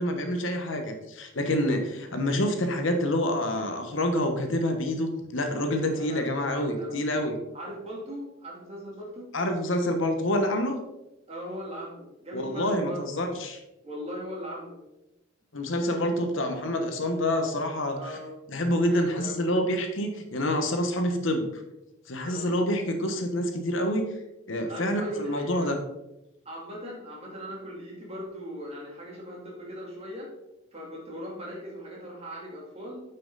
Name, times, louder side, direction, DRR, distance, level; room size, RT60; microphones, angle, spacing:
voice 1, 0.0-7.4 9.3-10.8 12.3-13.6 15.5-18.2 18.5-21.5 22.1-24.1 24.5-25.8, left 1 dB, 65° left, 5 dB, 1.1 m, -27 dB
voice 2, 5.8-7.0 7.5-9.3 11.3-13.0 13.8-14.8 18.0-18.3 18.9-19.5 22.2-22.5 24.7-25.7 26.4-30.3 30.7-33.0, equal, 30° right, -3 dB, 2.7 m, -39 dB
9.3 x 5.7 x 4.0 m, 0.91 s
head